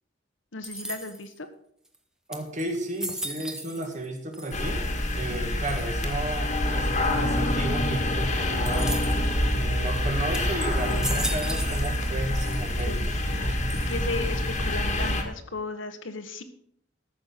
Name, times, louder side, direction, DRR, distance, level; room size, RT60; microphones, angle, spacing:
voice 1, 0.5-1.5 5.3-5.6 12.8-16.4, left 3 dB, 80° left, 9 dB, 1.3 m, -36 dB
sound 1, 0.6-1.4 1.9-2.0 2.3-4.1 4.3-4.9 5.7-6.1 8.7-9.3 9.9-10.0 10.3-12.1 12.4-13.0 13.7-14.3, right 1 dB, 5° right, 0.9 m, -37 dB
voice 2, 2.3-4.8 5.1-8.9 9.5-13.2, right 1 dB, 40° right, 4 dB, 1.8 m, -33 dB
sound 2, 4.5-15.2, left 1 dB, 35° left, 1.6 m, -26 dB
13.5 x 6.5 x 5.9 m, 0.69 s
head